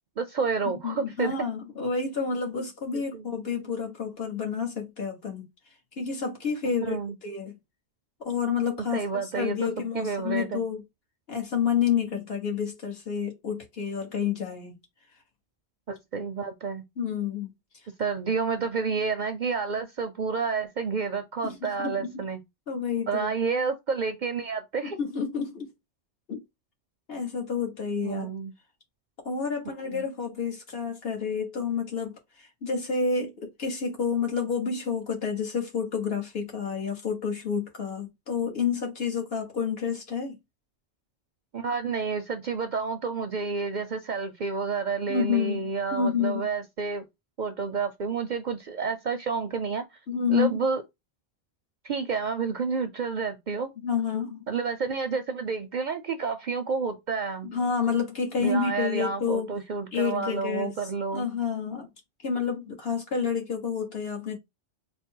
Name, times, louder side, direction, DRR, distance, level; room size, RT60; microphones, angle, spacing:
voice 1, 0.2-1.3 2.9-3.2 6.8-7.2 8.8-9.7 9.9-10.6 15.9-16.8 18.0-22.4 23.1-25.0 28.0-28.5 29.7-30.0 41.5-47.1 47.4-49.8 50.3-50.8 51.8-53.7 54.5-57.5 58.4-61.3, right 5 dB, 55° right, 0.5 m, -30 dB
voice 2, 0.8-5.4 6.0-7.6 8.2-9.0 9.3-10.8 11.3-14.8 17.0-17.5 21.4-22.2 22.7-23.3 24.8-25.7 26.3-26.4 27.1-28.3 29.2-40.4 45.1-46.5 50.1-50.6 53.8-54.4 57.4-59.5 59.9-60.8 61.1-61.9 62.2-64.4, left 6 dB, 60° left, 1.5 m, -29 dB
3.8 x 2.1 x 4.4 m
omnidirectional pair, 1.1 m